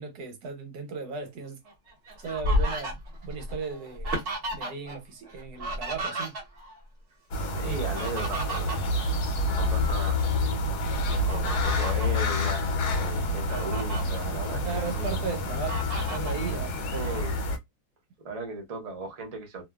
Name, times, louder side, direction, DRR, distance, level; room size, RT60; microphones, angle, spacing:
voice 1, 0.0-1.6 2.2-4.2 4.5-6.3 14.6-17.2, right 4 dB, 85° right, 1.3 m, -36 dB
Fowl, 1.7-5.0 5.3-6.8 7.7-9.8 10.3-10.5 11.1-12.2 12.8-12.9 13.2-14.0 14.6-15.2 15.7-16.4, equal, 50° right, 1.3 m, -33 dB
sound 1, 7.3-17.6, left 2 dB, 80° left, 1.3 m, -28 dB
voice 2, 7.3-8.9 9.5-10.3 11.2-15.2 16.9-17.4 18.2-19.6, right 3 dB, 35° right, 0.6 m, -37 dB
2.8 x 2.2 x 2.2 m
omnidirectional pair, 1.7 m